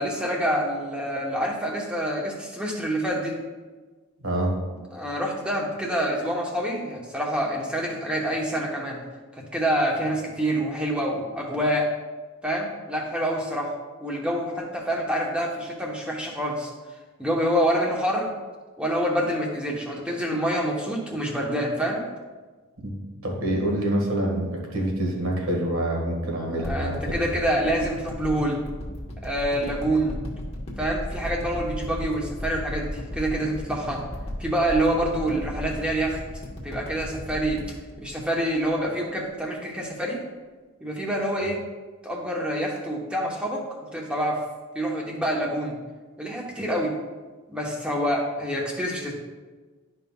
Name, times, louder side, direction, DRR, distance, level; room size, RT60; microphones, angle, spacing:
voice 1, 0.0-3.4 4.9-9.0 9.3-11.9 12.4-13.7 14.0-16.7 17.2-18.3 18.8-22.1 26.6-28.6 29.2-30.2 30.8-34.0 34.4-36.2 36.6-37.6 38.0-40.2 40.8-41.6 42.0-43.6 43.9-44.4 44.7-45.8 46.2-46.9 47.5-49.1, right 1 dB, 5° right, -2 dB, 1.0 m, -26 dB
voice 2, 4.2-4.6 22.8-22.9 23.2-27.2, right 1 dB, 70° right, -1 dB, 1.6 m, -26 dB
sound 1, 26.6-39.0 39.4-39.5, left 1 dB, 25° left, 1.1 m, -35 dB
11.5 x 5.4 x 2.3 m, 1.3 s
head